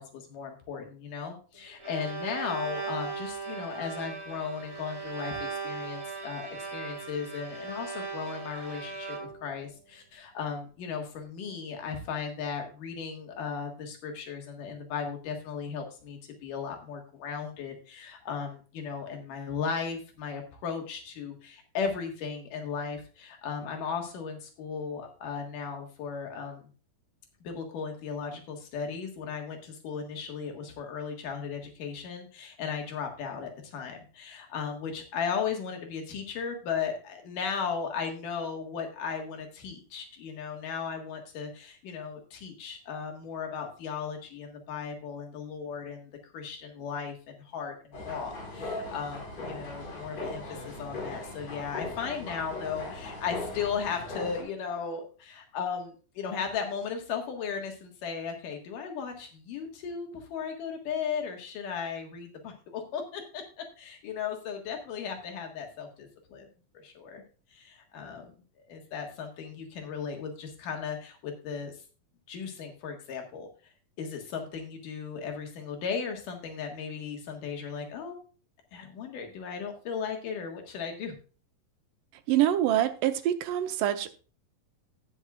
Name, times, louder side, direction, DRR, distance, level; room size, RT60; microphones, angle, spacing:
voice 1, 0.0-26.7 27.4-66.5 66.8-67.2 67.5-68.3 68.7-71.8 72.3-73.5 74.0-78.2 78.7-81.2, left 6 dB, 75° left, 3 dB, 3.3 m, -36 dB
Bowed string instrument, 1.5-9.6, right 5 dB, 40° right, 2.8 m, -38 dB
sound 1, 47.9-54.4, left 2 dB, 45° left, 6.1 m, -39 dB
voice 2, 82.3-84.1, right 12 dB, 80° right, 9 dB, 2.4 m, -25 dB
18.0 x 6.3 x 2.4 m, 0.37 s
omnidirectional pair, 3.8 m